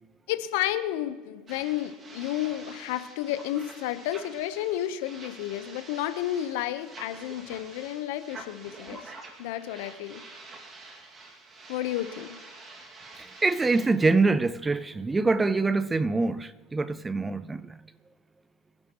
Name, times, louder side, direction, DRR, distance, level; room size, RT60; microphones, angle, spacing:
voice 1, 0.3-9.1 9.4-10.2 11.7-12.4, left 13 dB, 75° left, 1.0 m, -31 dB
sound 1, 1.5-13.9, right 3 dB, 30° right, 2.2 m, -47 dB
voice 2, 13.2-17.8, right 3 dB, 15° right, 0.5 m, -25 dB
25.0 x 11.0 x 3.1 m
supercardioid pair, 120°, 0 cm